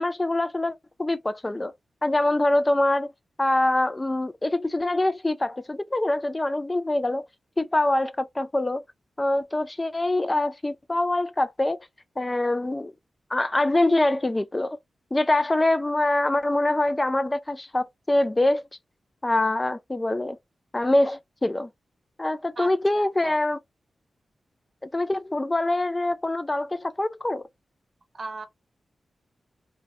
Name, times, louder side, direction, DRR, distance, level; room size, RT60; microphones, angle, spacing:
voice 1, 0.0-1.7 2.0-3.1 3.4-7.2 7.6-8.8 9.2-11.8 12.2-12.9 13.3-14.8 15.1-18.6 19.2-20.4 20.7-21.7 22.2-23.6 24.8-27.4, left 1 dB, 25° left, 0.3 m, -24 dB
voice 2, 22.6-23.4 28.1-28.5, right 3 dB, 55° right, 0.7 m, -38 dB
2.3 x 2.1 x 2.8 m
cardioid pair, 45°, 0 cm